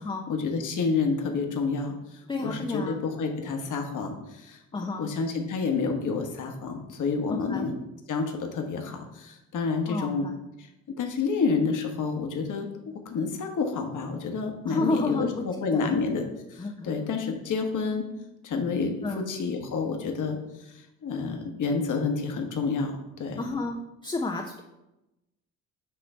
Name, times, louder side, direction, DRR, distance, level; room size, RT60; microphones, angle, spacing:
voice 1, 0.3-1.9 2.4-4.6 5.0-7.7 8.1-10.3 11.0-12.7 13.0-16.2 16.5-18.1 18.4-20.4 21.0-23.4, left 4 dB, 45° left, 4 dB, 1.2 m, -29 dB
voice 2, 2.3-3.0 4.7-5.1 7.3-7.7 9.9-10.4 14.7-15.5 15.7-16.0 16.6-17.1 19.0-19.3 23.4-24.6, left 2 dB, 10° left, 3 dB, 0.6 m, -31 dB
7.7 x 3.2 x 4.5 m, 0.94 s
hypercardioid pair, 55°, 42 cm